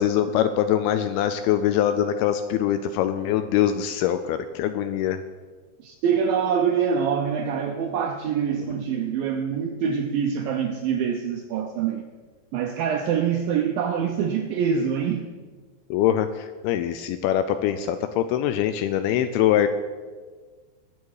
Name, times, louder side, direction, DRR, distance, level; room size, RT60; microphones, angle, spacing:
voice 1, 0.0-5.2 15.9-19.7, left 10 dB, 85° left, 10 dB, 2.3 m, -23 dB
voice 2, 5.8-12.0 12.5-15.3, right 7 dB, 85° right, 5 dB, 2.1 m, -25 dB
21.0 x 7.2 x 4.8 m, 1.4 s
omnidirectional pair, 4.9 m